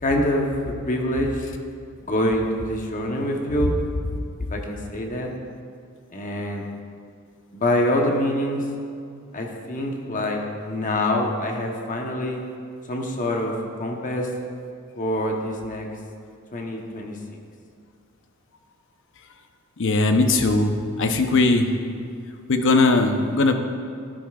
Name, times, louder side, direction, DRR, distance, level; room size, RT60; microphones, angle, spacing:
voice 1, 0.0-1.4 2.1-3.8 4.5-5.3 6.1-6.6 7.5-8.6 9.3-12.4 12.9-14.3 14.9-15.9 16.5-17.4, left 1 dB, 40° left, 1 dB, 1.0 m, -25 dB
voice 2, 19.8-21.7 22.5-23.5, left 3 dB, 60° left, 6 dB, 0.8 m, -19 dB
12.5 x 11.5 x 2.4 m, 2.3 s
head